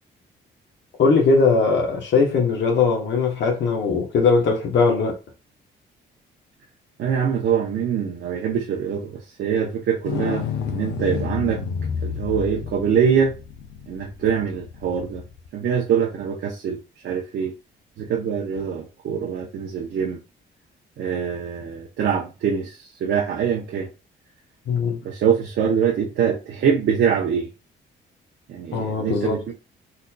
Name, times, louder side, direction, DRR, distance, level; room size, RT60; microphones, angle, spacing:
voice 1, 1.0-5.2 24.7-25.0 28.7-29.4, left 4 dB, 65° left, 1.0 m, -20 dB
voice 2, 7.0-11.6 12.0-13.4 13.9-15.2 15.5-16.8 17.0-17.5 18.0-20.2 21.0-23.9 25.0-27.5 28.5-29.5, right 7 dB, 65° right, 0.7 m, -24 dB
sound 1, 10.0-15.5 18.5-18.6, left 6 dB, 90° left, 0.5 m, -30 dB
4.0 x 2.7 x 2.2 m
cardioid pair, 90°, 20 cm